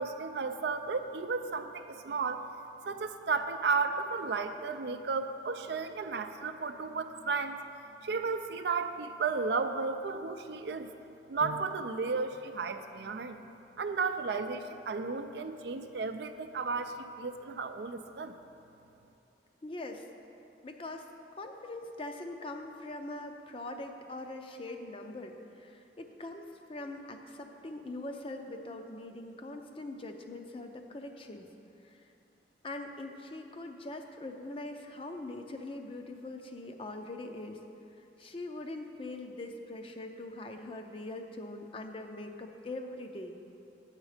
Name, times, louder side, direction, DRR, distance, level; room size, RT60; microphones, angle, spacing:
voice 1, 0.0-2.5 2.8-7.6 8.0-10.9 11.3-13.5 13.8-18.3, right 4 dB, 70° right, 8 dB, 0.4 m, -33 dB
voice 2, 19.6-20.1 20.6-21.1 21.4-31.5 31.8-32.0 32.6-37.6 38.0-43.3, left 2 dB, 30° left, 5 dB, 0.5 m, -42 dB
9.0 x 7.2 x 4.9 m, 2.7 s
head